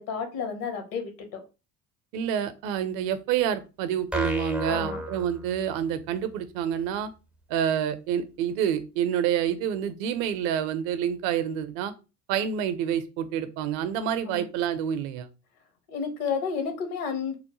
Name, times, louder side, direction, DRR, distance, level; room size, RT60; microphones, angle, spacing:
voice 1, 0.0-1.4 4.7-5.0 14.2-14.4 15.9-17.3, left 6 dB, 65° left, 6 dB, 0.9 m, -31 dB
voice 2, 2.1-7.1 7.5-11.9 12.3-15.3, right 9 dB, 60° right, 11 dB, 0.6 m, -28 dB
sound 1, 4.1-6.0, equal, ahead, 0.3 m, -33 dB
3.0 x 2.1 x 2.9 m, 0.30 s
figure-of-eight pair, 60°, 47 cm